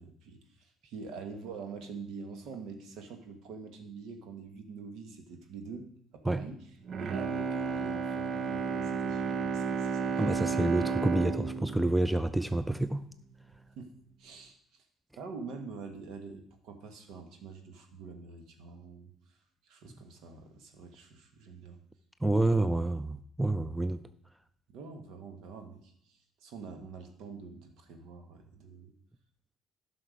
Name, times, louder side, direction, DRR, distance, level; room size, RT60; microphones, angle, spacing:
voice 1, 0.0-6.6 7.0-10.2 13.8-14.8 15.2-19.4 19.6-21.8 24.7-28.9, right 4 dB, 65° right, 1.5 m, -45 dB
Bowed string instrument, 6.8-13.1 13.5-13.6, right 5 dB, 50° right, 0.7 m, -33 dB
voice 2, 10.2-13.1 22.2-24.0, right 2 dB, 5° right, 0.6 m, -28 dB
11.5 x 6.0 x 4.9 m
hypercardioid pair, 55°, 0 cm